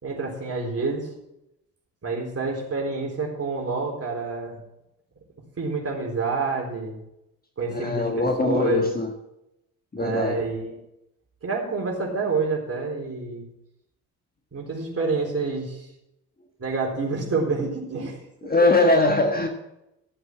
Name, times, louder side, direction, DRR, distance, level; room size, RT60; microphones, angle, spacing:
voice 1, 0.0-1.1 2.0-4.6 5.6-7.0 7.6-8.8 10.0-10.8 11.4-13.4 14.5-15.9 16.6-18.5, right 4 dB, 35° right, 0 dB, 4.0 m, -28 dB
voice 2, 7.7-9.1 9.9-10.3 18.4-19.5, left 2 dB, 20° left, 3 dB, 1.6 m, -21 dB
14.0 x 7.8 x 6.0 m, 0.86 s
hypercardioid pair, 50°, 43 cm